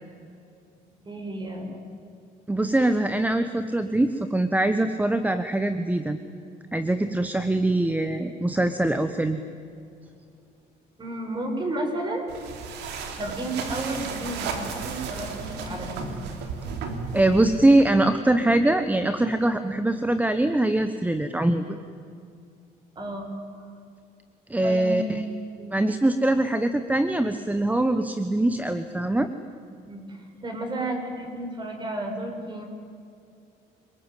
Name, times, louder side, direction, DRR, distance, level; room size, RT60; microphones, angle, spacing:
voice 1, 1.0-1.9 11.0-12.2 13.2-16.1 23.0-23.3 24.6-25.3 25.5-25.9 29.8-32.6, right 1 dB, 25° right, 3 dB, 6.4 m, -32 dB
voice 2, 2.5-6.2 6.7-9.4 17.1-21.8 24.5-25.2 25.7-29.3, right 1 dB, 10° right, 9 dB, 1.2 m, -23 dB
sound 1, 12.3-17.8, right 5 dB, 85° right, 3.3 m, -34 dB
28.5 x 20.5 x 9.2 m, 2.5 s
cardioid pair, 110°, 17 cm